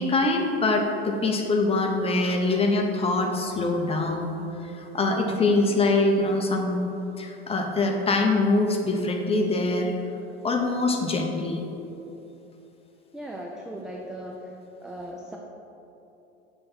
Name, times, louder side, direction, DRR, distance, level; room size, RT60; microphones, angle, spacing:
voice 1, 0.0-4.4 4.7-6.8 7.2-9.9 10.4-11.6, left 2 dB, 15° left, 2 dB, 0.8 m, -24 dB
voice 2, 13.1-14.5 14.8-15.4, right 1 dB, ahead, -1 dB, 0.3 m, -37 dB
6.7 x 3.4 x 5.7 m, 2.9 s
figure-of-eight pair, 75°, 33 cm